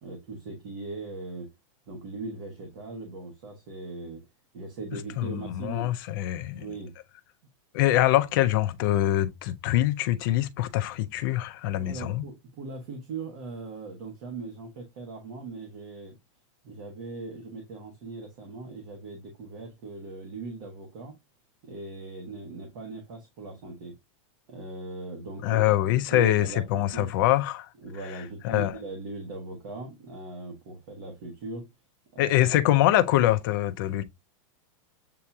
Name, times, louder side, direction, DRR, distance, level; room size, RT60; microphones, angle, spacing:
voice 1, 0.0-1.5 1.9-4.3 4.5-5.9 6.6-6.9 11.7-16.2 16.6-21.2 21.6-24.0 24.5-27.1 27.8-31.7 32.1-32.6, right 3 dB, 45° right, 1.3 m, -39 dB
voice 2, 5.2-6.6 7.7-12.3 25.4-27.7 28.4-28.7 32.2-34.0, left 14 dB, 40° left, 0.5 m, -24 dB
7.5 x 2.9 x 2.3 m
supercardioid pair, 175°, 17 cm